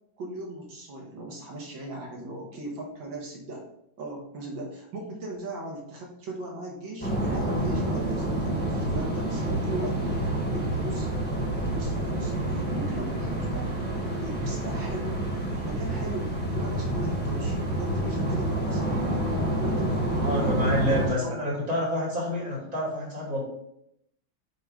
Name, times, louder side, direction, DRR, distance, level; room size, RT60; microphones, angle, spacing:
voice 1, 0.2-3.6 4.0-11.1 11.7-13.7 14.2-15.2 15.6-19.2 19.5-21.5 22.3-22.4, right 1 dB, 70° right, -1 dB, 2.2 m, -38 dB
sound 1, 7.0-21.1, right 1 dB, 5° left, 1.4 m, -28 dB
voice 2, 20.2-23.4, left 1 dB, 45° right, -5 dB, 3.4 m, -28 dB
7.8 x 3.9 x 4.8 m, 0.77 s
omnidirectional pair, 2.2 m